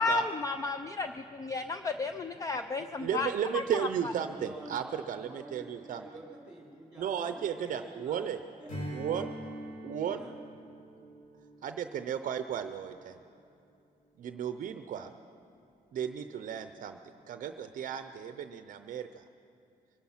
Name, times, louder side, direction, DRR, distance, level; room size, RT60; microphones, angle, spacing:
voice 1, 0.0-3.6, left 3 dB, 20° left, 9 dB, 0.3 m, -33 dB
voice 2, 2.8-6.1 7.0-8.4 8.9-9.3 9.8-10.2 11.6-13.2 14.2-15.1 15.9-17.0 17.3-19.2, right 8 dB, 60° right, 9 dB, 0.6 m, -34 dB
voice 3, 4.3-8.3 8.6-9.1 10.1-10.4, right 1 dB, 5° right, -3 dB, 3.9 m, -49 dB
Strum, 8.7-13.5, right 1 dB, 60° left, 4.8 m, -44 dB
23.5 x 10.5 x 5.7 m, 2.6 s
wide cardioid pair, 175°, 16 cm